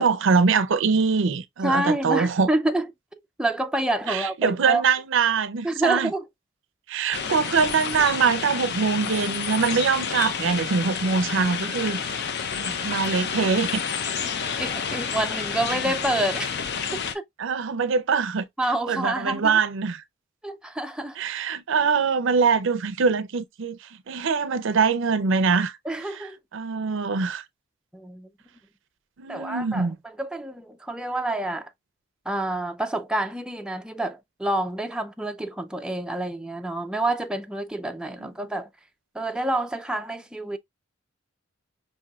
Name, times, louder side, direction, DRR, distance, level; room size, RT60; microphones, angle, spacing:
voice 1, 0.0-2.5 4.1-6.1 6.9-12.0 12.5-13.8 17.4-18.5 18.9-20.0 21.2-23.8 24.1-27.4 29.2-30.0, right 5 dB, 65° right, 0.5 m, -23 dB
voice 2, 1.6-2.9 3.4-4.8 5.6-6.3 14.6-16.6 16.9-17.2 18.6-19.5 20.4-21.2 25.9-26.4 27.9-28.3 29.3-29.9 30.2-31.7 32.3-38.7 39.1-40.6, right 1 dB, 5° right, 0.3 m, -28 dB
sound 1, 7.1-17.1, left 6 dB, 55° left, 0.6 m, -29 dB
6.0 x 2.7 x 2.2 m
head